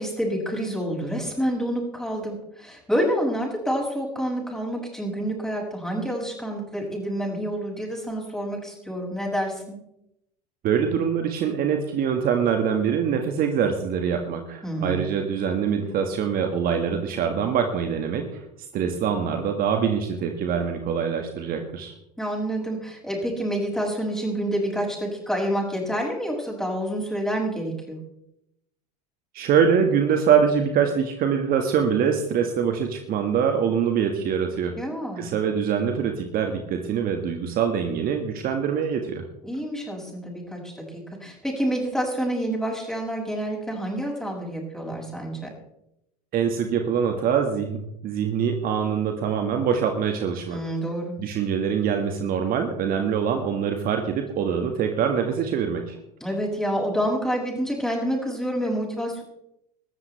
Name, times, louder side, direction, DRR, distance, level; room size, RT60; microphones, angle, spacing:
voice 1, 0.0-9.7 14.6-15.0 22.2-28.0 34.8-35.3 39.4-45.5 50.5-51.1 56.2-59.2, equal, ahead, -2 dB, 6.6 m, -28 dB
voice 2, 10.6-18.3 18.7-21.9 29.3-34.8 35.2-39.3 46.3-50.6 51.2-56.0, right 7 dB, 45° right, 5 dB, 1.8 m, -24 dB
20.5 x 14.0 x 3.4 m, 0.81 s
hypercardioid pair, 80°, 20 cm